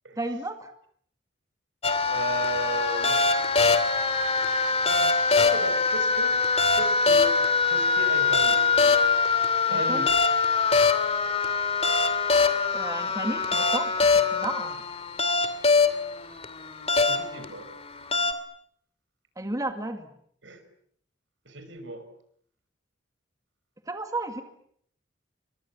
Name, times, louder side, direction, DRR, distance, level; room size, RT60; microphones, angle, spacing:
voice 1, 0.2-0.7 9.7-10.1 12.7-13.9 14.3-14.8 19.4-20.1 23.9-24.4, right 2 dB, 20° right, 6 dB, 2.2 m, -32 dB
sound 1, 1.8-18.3, left 4 dB, 35° left, 2.5 m, -23 dB
voice 2, 2.1-3.2 5.3-6.3 6.7-8.7 9.7-10.1 17.1-17.7 20.4-20.6 21.5-22.0, right 2 dB, 80° right, 9 dB, 5.8 m, -35 dB
30.0 x 24.5 x 7.4 m, 0.66 s
head